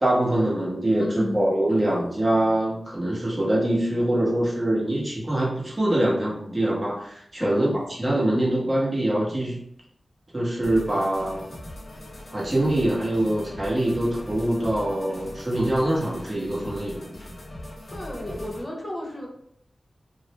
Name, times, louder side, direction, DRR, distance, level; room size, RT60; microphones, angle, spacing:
voice 1, 0.0-9.6 10.3-11.5 12.3-17.1, right 1 dB, 35° right, -5 dB, 0.9 m, -24 dB
voice 2, 1.0-1.5 7.4-7.8 17.9-19.3, left 1 dB, 25° left, -3 dB, 0.8 m, -32 dB
sound 1, 10.6-18.6, left 1 dB, 65° left, 0.7 m, -40 dB
2.4 x 2.1 x 2.9 m, 0.70 s
cardioid pair, 55°, 0 cm